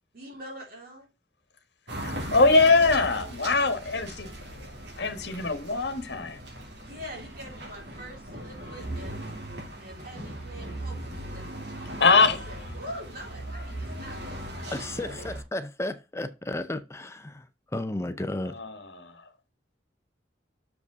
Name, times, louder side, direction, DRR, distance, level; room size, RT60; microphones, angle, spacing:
voice 1, 0.1-1.1 6.8-9.3 9.8-11.6 11.9-15.3, equal, 55° right, 3.9 m, -44 dB
sound 1, 1.9-15.4, right 1 dB, 70° right, 2.9 m, -39 dB
voice 2, 2.0-4.3 5.0-6.4 12.0-12.4 18.5-19.2, left 3 dB, 65° left, 1.4 m, -22 dB
voice 3, 14.7-17.4 17.7-18.6, left 1 dB, 15° left, 0.6 m, -33 dB
6.8 x 5.2 x 4.8 m
head